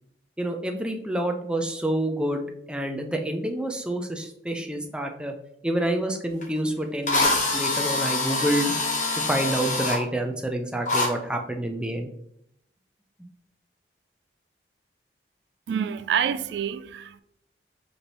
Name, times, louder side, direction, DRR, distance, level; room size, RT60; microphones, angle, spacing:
voice 1, 0.4-5.3 5.6-8.7 9.1-12.1, right 1 dB, 5° right, 0.4 m, -28 dB
Drill, 6.4-6.5 7.1-10.0 10.9-11.1, left 2 dB, 45° left, 1.1 m, -25 dB
voice 2, 15.7-17.2, right 8 dB, 75° right, 0.3 m, -27 dB
5.1 x 3.2 x 3.0 m
head